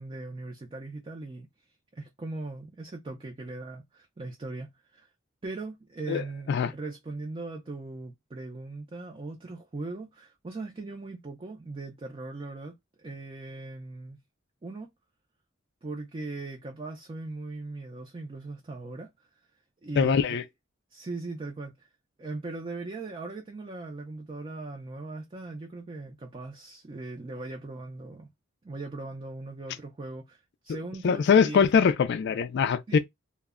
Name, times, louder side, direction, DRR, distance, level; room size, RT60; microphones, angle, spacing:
voice 1, 0.0-1.5 1.9-5.1 5.4-14.2 14.6-14.9 15.8-19.3 19.8-20.4 20.9-21.9 22.2-28.3 28.6-31.7 32.9-33.0, right 3 dB, 25° right, 0.4 m, -39 dB
voice 2, 6.1-6.7 20.0-20.4 31.0-33.0, left 6 dB, 55° left, 0.3 m, -23 dB
2.1 x 2.1 x 3.4 m
head